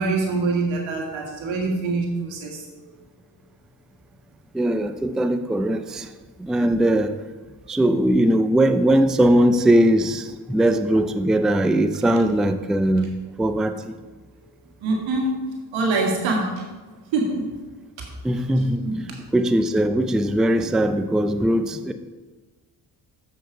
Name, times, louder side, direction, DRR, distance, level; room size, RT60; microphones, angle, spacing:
voice 1, 0.0-2.6 14.8-15.3 15.7-16.5 17.1-17.5 18.0-18.1 18.8-19.1, right 3 dB, 85° right, 0 dB, 1.7 m, -24 dB
voice 2, 4.5-6.1 6.4-7.2 7.7-13.1 13.4-14.0 18.2-18.9 19.3-21.9, right 1 dB, ahead, 9 dB, 0.3 m, -20 dB
7.7 x 5.4 x 4.5 m, 1.3 s
supercardioid pair, 65°, 45 cm